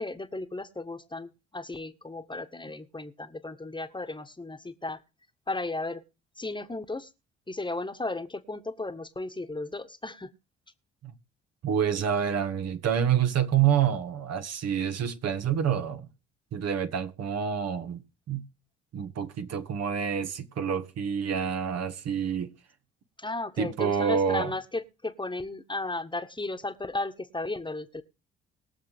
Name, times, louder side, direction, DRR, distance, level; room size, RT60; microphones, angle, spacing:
voice 1, 0.0-5.0 5.5-6.0 6.4-7.1 7.5-10.3 23.2-28.0, left 2 dB, 15° left, 1.6 m, -35 dB
voice 2, 11.6-16.1 16.5-18.5 18.9-22.5 23.6-24.5, right 8 dB, 50° right, 1.6 m, -27 dB
21.5 x 7.4 x 3.6 m
figure-of-eight pair, 45°, 32 cm